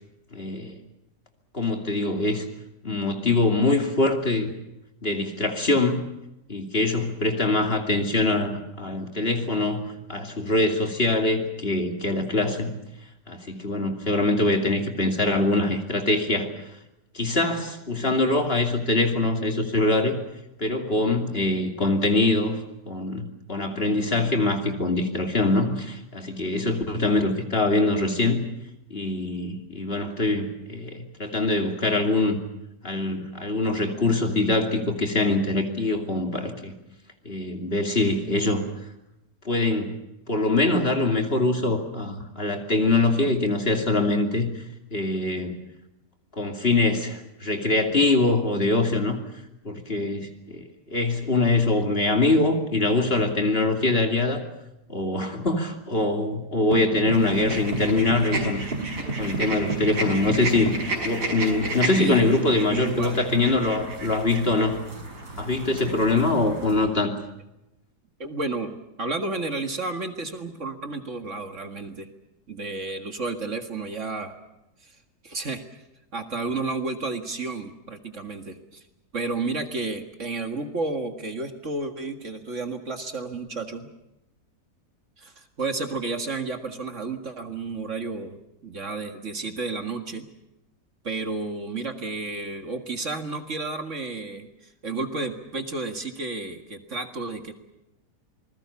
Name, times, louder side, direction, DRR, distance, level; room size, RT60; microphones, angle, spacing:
voice 1, 0.3-0.7 1.5-2.4 2.8-4.5 5.0-6.0 6.5-12.7 13.3-16.5 17.1-20.2 20.6-22.6 22.9-28.4 28.9-32.4 32.8-36.7 37.2-38.6 39.4-39.9 40.3-44.5 44.9-45.6 46.4-49.2 49.6-54.4 54.9-58.6 59.2-60.7 61.0-64.8 65.4-67.1, left 2 dB, 35° left, 4 dB, 2.9 m, -23 dB
sound 1, 56.7-60.9, right 2 dB, 30° right, 3.2 m, -32 dB
sound 2, 57.1-66.9, right 2 dB, 85° right, 6.1 m, -33 dB
voice 2, 62.0-63.3 68.2-72.1 72.5-74.3 74.8-75.0 75.2-75.6 76.1-78.8 79.1-83.9 85.2-90.3 91.0-97.5, right 3 dB, 50° right, 6 dB, 2.2 m, -32 dB
27.0 x 21.0 x 7.1 m, 0.93 s
omnidirectional pair, 1.7 m